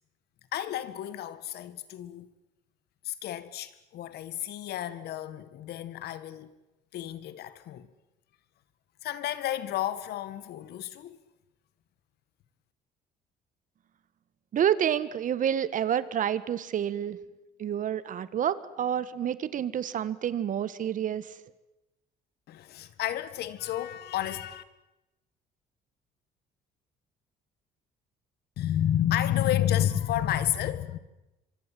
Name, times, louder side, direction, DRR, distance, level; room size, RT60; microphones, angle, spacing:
voice 1, 0.5-2.3 3.1-6.5 6.9-7.9 9.0-11.2 22.5-24.6 28.6-31.0, left 11 dB, 75° left, 1.9 m, -31 dB
voice 2, 14.5-17.2 17.6-21.3, right 9 dB, 50° right, 1.4 m, -28 dB
25.5 x 24.0 x 7.7 m
cardioid pair, 110°, 17 cm